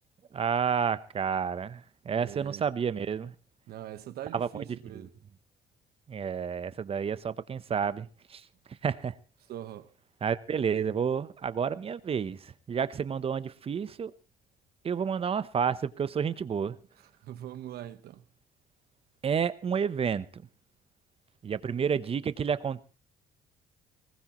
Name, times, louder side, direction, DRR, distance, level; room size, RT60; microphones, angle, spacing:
voice 1, 0.3-3.3 4.3-4.6 4.9-5.1 6.1-8.4 8.8-9.1 10.2-14.1 14.8-16.8 19.2-20.4 21.4-22.8, right 7 dB, 35° right, 0.9 m, -30 dB
voice 2, 2.1-2.7 3.7-5.1 9.5-9.9 17.2-18.2, right 12 dB, 70° right, 1.2 m, -42 dB
20.0 x 19.0 x 3.1 m
cardioid pair, 110°, 17 cm